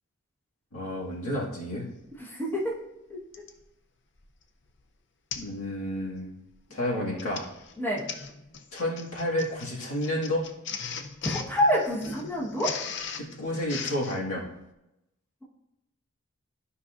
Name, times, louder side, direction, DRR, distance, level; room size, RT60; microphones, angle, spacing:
voice 1, 0.7-1.9 5.4-6.3 6.7-7.4 8.7-10.5 13.2-14.4, left 1 dB, 90° left, -4 dB, 1.9 m, -30 dB
Printer, 2.1-2.2 3.3-3.6 4.2-4.4 4.7-4.8 5.3-5.6 5.9-6.2 7.0-14.2, left 6 dB, 55° left, 0.5 m, -38 dB
voice 2, 2.2-2.8 3.1-3.4 6.9-7.2 7.8-8.0 11.2-12.7, equal, 10° left, -5 dB, 1.2 m, -28 dB
12.0 x 5.5 x 2.5 m, 0.90 s
head